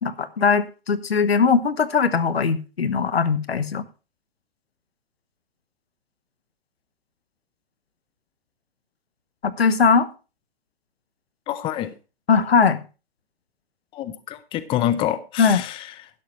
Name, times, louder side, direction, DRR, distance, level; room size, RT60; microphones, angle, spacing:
voice 1, 0.0-3.8 9.4-10.1 12.3-12.8 15.4-15.6, left 5 dB, 85° left, 1.2 m, -20 dB
voice 2, 11.5-11.9 13.9-16.1, left 12 dB, 15° left, 0.6 m, -27 dB
11.5 x 11.0 x 3.1 m
hypercardioid pair, 125°, 30 cm